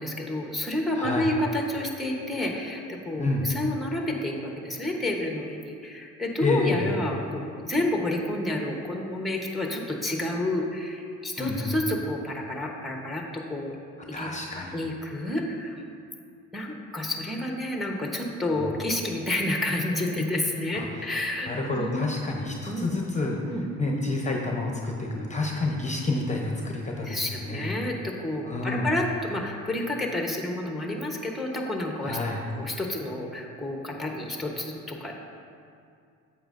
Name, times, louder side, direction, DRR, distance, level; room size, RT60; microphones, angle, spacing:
voice 1, 0.0-13.8 14.2-14.3 14.7-15.8 16.5-21.5 21.8-22.1 22.7-22.9 23.5-23.7 27.0-32.2 32.6-35.2, left 1 dB, ahead, 0 dB, 0.9 m, -30 dB
voice 2, 0.9-1.3 3.2-3.5 6.4-6.9 11.4-11.7 14.1-14.8 18.5-18.7 20.7-20.8 21.5-23.4 23.8-27.7 28.4-28.9 32.0-32.4, left 2 dB, 25° left, 0 dB, 0.8 m, -29 dB
8.8 x 7.5 x 2.5 m, 2.3 s
cardioid pair, 90°, 30 cm